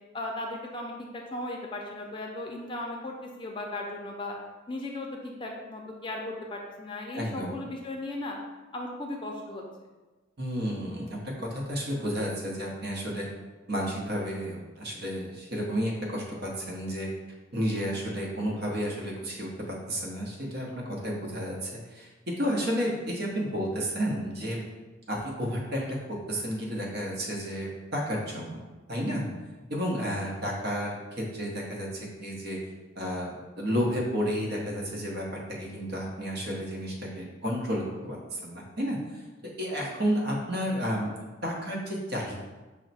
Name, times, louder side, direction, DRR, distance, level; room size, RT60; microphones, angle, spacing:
voice 1, 0.1-4.4 4.7-8.4 8.7-9.6, left 2 dB, 25° left, 0 dB, 0.5 m, -36 dB
voice 2, 7.1-7.6 10.4-13.3 13.7-17.1 17.5-24.6 25.1-26.0 26.3-28.6 28.9-29.3 29.7-32.6 33.0-39.2 39.6-41.1 41.4-42.4, equal, 55° right, -2 dB, 1.0 m, -31 dB
5.5 x 2.1 x 4.1 m, 1.2 s
head